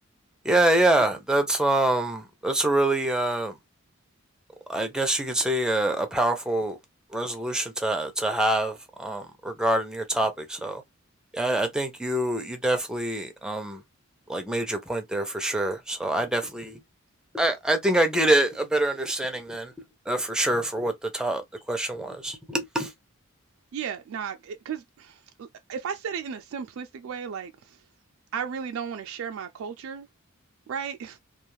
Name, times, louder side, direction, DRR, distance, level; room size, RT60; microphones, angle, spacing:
voice 1, 0.4-3.5 4.7-6.8 7.1-10.8 11.3-13.8 14.3-16.8 17.3-19.7 20.1-21.4 21.7-22.9, right 1 dB, 5° right, 0.5 m, -25 dB
voice 2, 23.7-27.8 28.3-30.1 30.7-31.2, right 7 dB, 70° right, 0.3 m, -35 dB
2.4 x 2.3 x 3.0 m
head